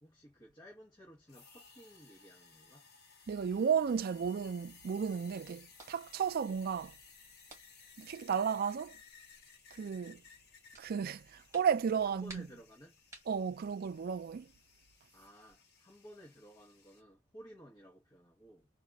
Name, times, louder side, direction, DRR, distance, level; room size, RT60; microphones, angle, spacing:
voice 1, 0.0-2.9 12.0-13.0 15.1-18.7, equal, 20° left, 1.2 m, -56 dB
sound 1, 1.3-17.0, left 5 dB, 55° left, 1.0 m, -60 dB
voice 2, 3.3-6.9 8.0-9.0 9.7-10.2 10.8-12.5 13.3-14.5, right 7 dB, 50° right, 0.3 m, -33 dB
sound 2, 5.6-14.9, right 2 dB, 15° right, 1.8 m, -61 dB
4.1 x 2.5 x 3.5 m
head